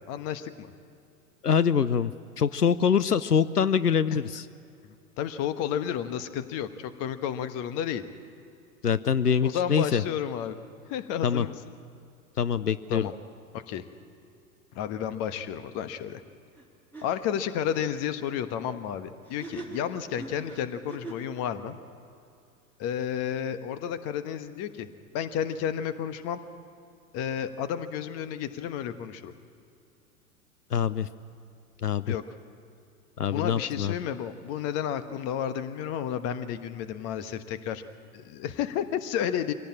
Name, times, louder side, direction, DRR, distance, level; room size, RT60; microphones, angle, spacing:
voice 1, 0.1-0.7 5.2-8.0 9.4-10.6 10.9-11.5 12.9-13.1 13.5-13.8 14.7-16.2 17.0-21.8 22.8-24.9 25.1-26.4 27.1-29.3 32.1-32.2 33.3-37.8 38.1-39.5, left 9 dB, 30° left, 11 dB, 1.3 m, -31 dB
voice 2, 1.4-4.4 8.8-10.0 11.2-11.5 12.4-13.1 30.7-31.1 31.8-32.1 33.2-33.9, left 7 dB, 85° left, 15 dB, 0.7 m, -24 dB
sound 1, 16.5-16.7 16.9-17.1 19.2-21.4, right 3 dB, 5° left, 3.6 m, -42 dB
24.5 x 17.5 x 8.7 m, 2.5 s
figure-of-eight pair, 95°, 46 cm